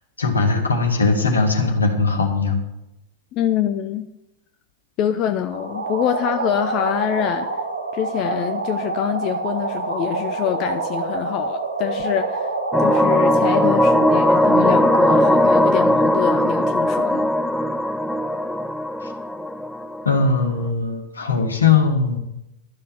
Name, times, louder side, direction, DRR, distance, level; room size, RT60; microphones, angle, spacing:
voice 1, 0.2-2.6 19.0-19.1 20.0-22.2, left 4 dB, 75° left, 2.2 m, -19 dB
voice 2, 3.3-4.1 5.0-7.5 7.9-12.5 12.8-17.3, left 10 dB, 40° left, 0.7 m, -25 dB
sound 1, 5.5-15.5, right 3 dB, 75° right, 2.4 m, -27 dB
sound 2, 12.7-20.3, equal, 5° left, 0.5 m, -19 dB
12.5 x 6.6 x 8.0 m
figure-of-eight pair, 90°, 0 cm